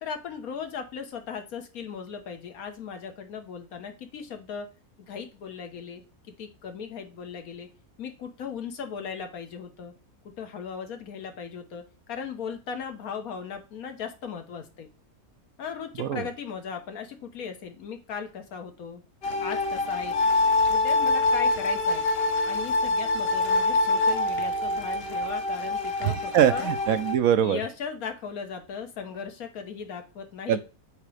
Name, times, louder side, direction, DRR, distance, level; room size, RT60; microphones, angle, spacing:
voice 1, 0.0-4.7 5.1-6.0 6.4-7.7 8.0-9.9 10.4-14.9 15.6-19.0 19.4-20.2 20.6-22.0 22.4-26.7 27.4-30.6, left 6 dB, 70° left, 6 dB, 1.4 m, -37 dB
sound 1, 19.2-27.1, left 2 dB, 50° left, 0.8 m, -25 dB
voice 2, 26.0-27.6 30.5-30.6, right 10 dB, 70° right, 12 dB, 1.0 m, -23 dB
8.1 x 2.9 x 4.8 m, 0.32 s
omnidirectional pair, 1.6 m